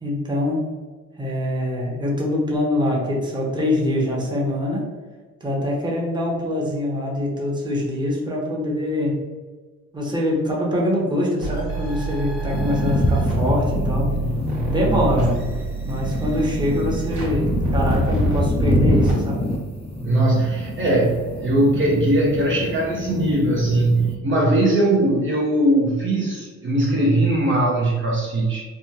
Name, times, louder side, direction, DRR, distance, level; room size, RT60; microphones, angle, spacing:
voice 1, 0.0-0.7 1.2-4.8 5.4-9.2 9.9-14.1 14.7-15.3 15.8-19.4, left 1 dB, 15° right, -3 dB, 0.9 m, -23 dB
sound 1, 11.4-19.1, right 1 dB, 85° right, 1.4 m, -26 dB
sound 2, 12.5-24.1, equal, 20° left, 0.4 m, -26 dB
voice 2, 20.0-28.6, right 1 dB, 40° right, -4 dB, 0.7 m, -20 dB
3.5 x 2.1 x 2.8 m, 1.4 s
cardioid pair, 90°, 30 cm